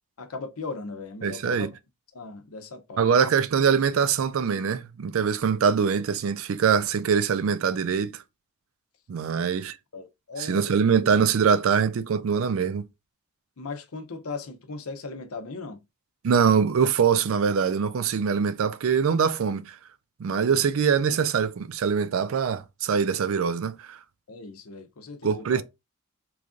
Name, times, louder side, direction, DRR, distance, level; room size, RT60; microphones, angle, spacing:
voice 1, 0.2-1.7 2.1-3.1 9.4-9.5 9.9-10.8 13.6-15.8 24.3-25.6, left 3 dB, 80° left, 0.7 m, -38 dB
voice 2, 1.2-1.7 3.0-8.2 9.1-9.7 10.4-12.9 16.2-19.8 20.2-24.0 25.2-25.6, right 6 dB, 65° right, 0.4 m, -23 dB
3.2 x 2.5 x 3.6 m
head